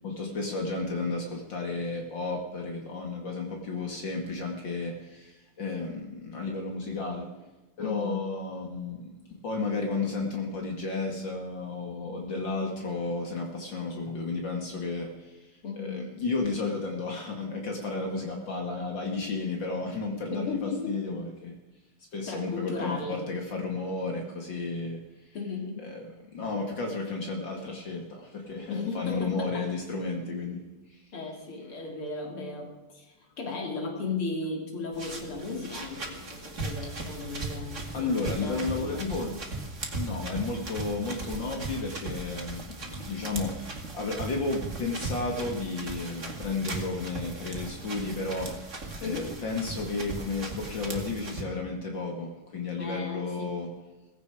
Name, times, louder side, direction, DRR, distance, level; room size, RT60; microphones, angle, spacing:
voice 1, 0.0-7.4 7.8-21.6 22.1-25.0 25.8-30.7 37.9-39.4 40.0-53.7, left 3 dB, 60° left, 2 dB, 2.7 m, -33 dB
voice 2, 7.8-8.2 15.6-16.0 20.3-21.0 22.3-23.2 25.3-25.9 28.7-29.7 31.1-39.1 40.2-40.5 49.0-49.3 52.8-53.6, left 4 dB, 90° left, 1 dB, 4.0 m, -35 dB
sound 1, 34.9-51.4, right 3 dB, 35° right, 2.6 m, -38 dB
18.0 x 16.0 x 4.9 m, 1.1 s
omnidirectional pair, 2.3 m